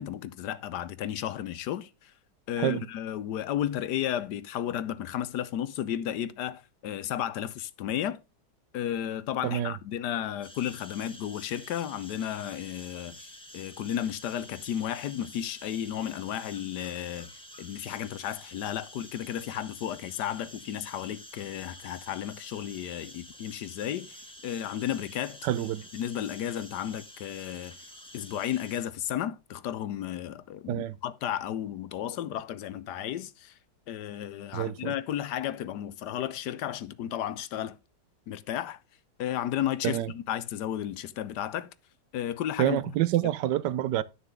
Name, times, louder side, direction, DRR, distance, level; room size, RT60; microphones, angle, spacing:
voice 1, 0.0-2.1 2.5-8.2 8.7-17.3 17.6-25.4 25.9-27.8 28.1-33.5 33.9-37.8 38.3-38.8 39.2-41.7 42.1-42.8, left 11 dB, 70° left, 1.2 m, -33 dB
voice 2, 9.4-9.8 25.4-25.9 30.7-31.0 34.5-34.9 39.8-40.1 42.6-44.0, right 12 dB, 75° right, 1.2 m, -27 dB
sound 1, 10.4-28.8, equal, 5° left, 1.4 m, -49 dB
11.0 x 6.6 x 3.6 m
omnidirectional pair, 2.0 m